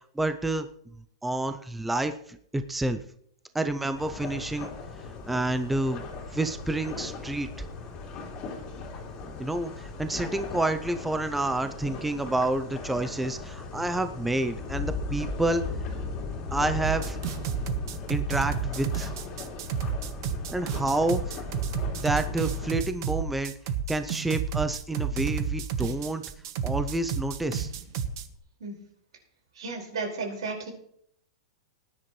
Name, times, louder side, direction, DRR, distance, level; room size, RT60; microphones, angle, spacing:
voice 1, 0.2-0.7 1.2-3.0 3.5-4.7 5.3-6.0 6.3-7.5 9.4-15.6 16.5-17.2 18.1-19.1 20.5-21.4 22.0-23.5 23.9-26.2 26.6-27.7, right 2 dB, 5° right, 9 dB, 0.4 m, -29 dB
sound 1, 3.9-22.7, left 3 dB, 25° left, 2.8 m, -38 dB
sound 2, 16.8-28.3, right 7 dB, 45° right, 1.1 m, -31 dB
voice 2, 29.6-30.7, right 3 dB, 80° right, 1 dB, 4.8 m, -33 dB
19.0 x 10.5 x 3.1 m, 0.67 s
supercardioid pair, 170°, 3 cm